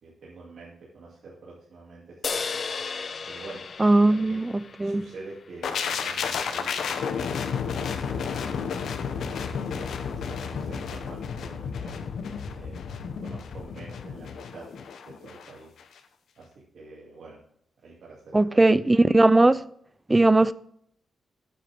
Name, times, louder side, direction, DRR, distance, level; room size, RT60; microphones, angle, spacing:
voice 1, 0.0-2.6 3.2-3.6 4.1-4.5 4.8-8.5 9.0-11.9 12.5-12.8 13.2-14.7 15.0-15.7 16.4-17.4 17.8-18.7, right 3 dB, 60° right, 2.7 m, -46 dB
sound 1, 2.2-5.7, left 5 dB, 40° left, 0.6 m, -35 dB
voice 2, 3.8-4.5 4.8-5.0 18.3-19.6 20.1-20.5, right 2 dB, 15° right, 0.4 m, -18 dB
sound 2, 5.6-15.5 15.8-16.0, left 6 dB, 75° left, 1.1 m, -32 dB
14.0 x 8.5 x 3.6 m
wide cardioid pair, 155°, 0 cm